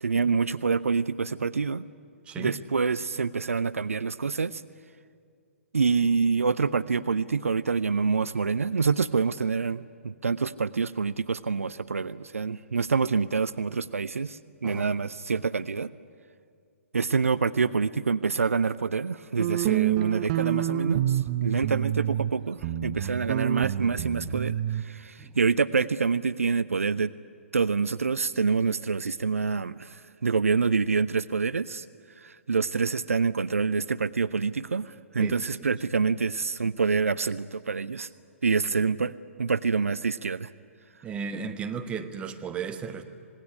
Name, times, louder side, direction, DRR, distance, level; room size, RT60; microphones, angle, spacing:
voice 1, 0.0-1.9 2.4-4.6 5.7-15.9 16.9-27.1 27.5-31.8 32.2-38.1 38.4-40.5, right 5 dB, 70° right, 16 dB, 0.6 m, -26 dB
voice 2, 2.2-2.6 14.6-14.9 25.2-25.3 35.2-35.7 41.0-43.0, right 6 dB, 15° right, 6 dB, 1.3 m, -35 dB
sound 1, 19.4-22.3 22.6-24.8, right 12 dB, 35° right, 0.9 m, -27 dB
26.0 x 20.0 x 9.9 m, 2.2 s
figure-of-eight pair, 120°, 8 cm